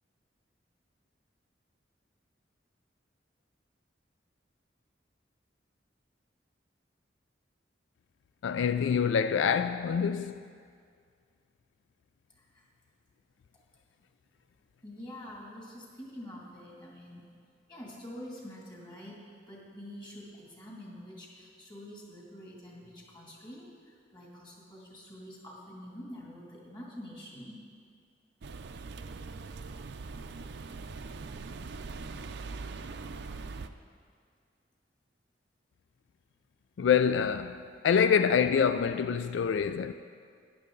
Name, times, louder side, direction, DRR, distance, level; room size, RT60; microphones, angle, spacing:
voice 1, 8.4-10.4 36.8-39.9, left 7 dB, 90° left, 0.3 m, -26 dB
voice 2, 12.3-12.7 14.8-17.3 17.7-19.2 19.5-27.6, equal, 25° left, 2.4 m, -46 dB
sound 1, 28.4-33.7, right 4 dB, 65° right, 0.5 m, -41 dB
14.0 x 10.5 x 3.8 m
head